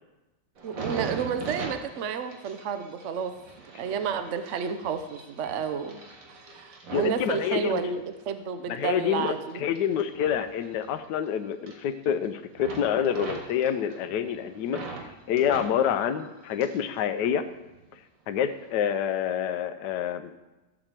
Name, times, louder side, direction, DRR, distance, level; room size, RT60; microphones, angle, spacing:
voice 1, 0.6-3.3 3.8-6.0 6.3-9.6, right 6 dB, 60° right, 9 dB, 0.8 m, -31 dB
sound 1, 0.6-8.2 8.7-11.3 11.5-12.3 12.6-15.1 15.4-16.9 17.2-18.0 18.5-18.7, right 4 dB, 90° right, 2.4 m, -41 dB
voice 2, 6.9-7.8 8.7-14.8 15.3-17.5 18.3-20.3, left 9 dB, 70° left, 9 dB, 1.2 m, -27 dB
13.0 x 5.0 x 7.4 m, 1.1 s
omnidirectional pair, 2.0 m